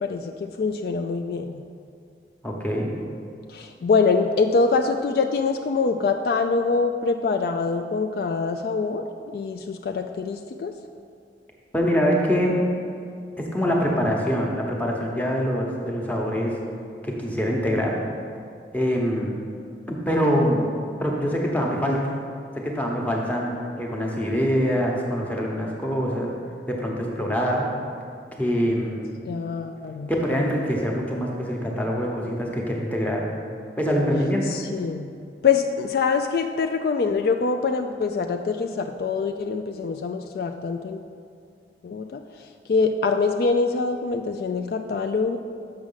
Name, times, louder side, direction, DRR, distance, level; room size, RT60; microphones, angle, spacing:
voice 1, 0.0-1.6 3.5-9.0 9.3-10.7 29.3-30.1 34.5-35.1 35.4-41.0 41.8-42.2 42.7-45.4, left 4 dB, 55° left, 6 dB, 0.3 m, -24 dB
voice 2, 2.4-2.9 11.7-12.6 13.4-16.6 17.0-17.9 18.7-19.4 19.9-20.7 21.0-22.1 22.6-23.5 23.8-26.3 26.7-27.7 28.4-29.0 30.1-33.3 33.8-34.5, equal, 10° left, -1 dB, 0.9 m, -24 dB
6.3 x 6.1 x 5.6 m, 2.3 s
head